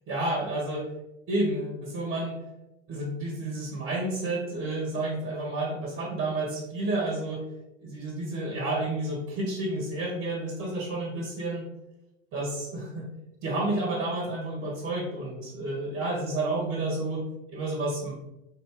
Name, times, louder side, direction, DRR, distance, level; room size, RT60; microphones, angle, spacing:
voice 1, 0.1-0.9 1.3-2.4 2.9-7.4 7.8-11.7 12.3-13.0 13.4-18.1, right 2 dB, 45° right, -1 dB, 1.5 m, -30 dB
3.8 x 2.8 x 3.8 m, 0.90 s
figure-of-eight pair, 75°, 31 cm